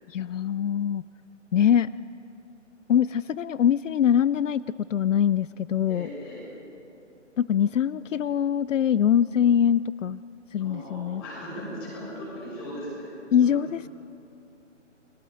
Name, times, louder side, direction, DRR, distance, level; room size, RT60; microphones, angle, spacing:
voice 1, 0.1-1.0 1.5-1.9 2.9-4.6 4.9-6.1 7.4-10.2 10.5-11.2 13.3-13.9, left 9 dB, 80° left, 18 dB, 0.5 m, -23 dB
voice 2, 5.9-6.4 10.6-13.1 13.4-13.5, equal, 20° left, -5 dB, 6.7 m, -38 dB
29.5 x 21.5 x 5.1 m, 2.9 s
hypercardioid pair, 175°, 37 cm